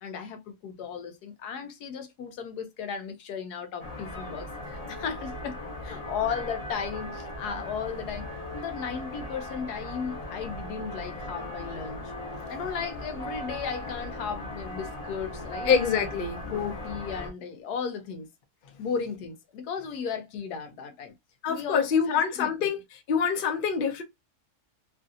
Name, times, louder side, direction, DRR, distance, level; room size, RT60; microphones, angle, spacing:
voice 1, 0.0-12.1 12.5-15.8 16.5-18.3 18.8-21.1 21.5-22.7, left 6 dB, 85° left, 1.2 m, -35 dB
sound 1, 3.8-17.3, left 1 dB, 25° left, 1.0 m, -38 dB
voice 2, 15.7-16.4 21.4-22.8 23.1-24.0, left 6 dB, 50° left, 0.7 m, -25 dB
3.1 x 2.6 x 2.4 m
omnidirectional pair, 1.7 m